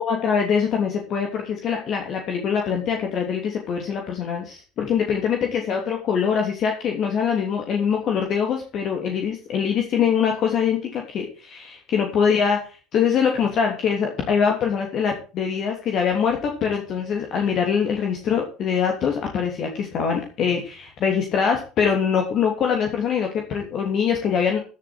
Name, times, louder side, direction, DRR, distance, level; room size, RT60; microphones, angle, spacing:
voice 1, 0.0-12.6 12.9-24.6, left 7 dB, 45° left, 2 dB, 2.9 m, -23 dB
15.5 x 7.5 x 4.6 m, 0.35 s
figure-of-eight pair, 65°, 0 cm